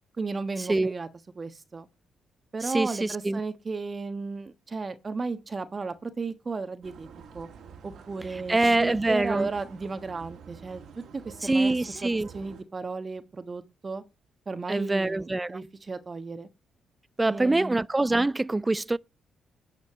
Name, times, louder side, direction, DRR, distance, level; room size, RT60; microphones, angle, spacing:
voice 1, 0.2-1.1 1.3-1.9 2.5-7.1 7.3-7.5 7.8-14.0 14.5-16.5 17.3-17.8, right 4 dB, 40° right, 1.3 m, -34 dB
voice 2, 2.6-3.4 8.5-9.5 11.4-12.3 14.7-15.6 17.2-19.0, right 2 dB, 20° right, 0.5 m, -24 dB
sound 1, 6.8-12.6, right 6 dB, 70° right, 2.0 m, -48 dB
11.0 x 5.2 x 6.2 m
supercardioid pair, 50°, 0 cm